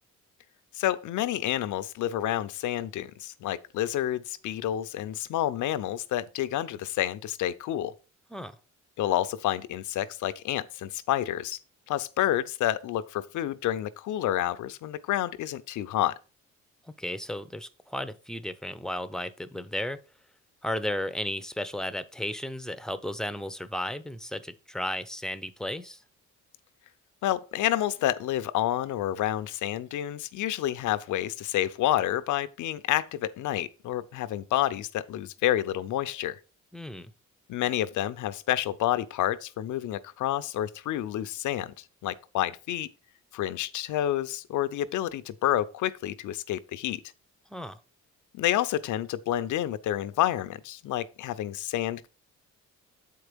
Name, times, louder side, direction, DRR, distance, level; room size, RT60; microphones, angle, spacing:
voice 1, 0.7-7.9 9.0-11.6 11.9-16.2 27.2-36.4 37.5-42.9 43.3-47.0 48.3-52.1, left 12 dB, 80° left, 0.7 m, -29 dB
voice 2, 16.8-20.0 20.6-26.0 36.7-37.1 47.5-47.8, left 1 dB, ahead, 0.7 m, -34 dB
7.9 x 4.7 x 5.1 m
cardioid pair, 90°, 30 cm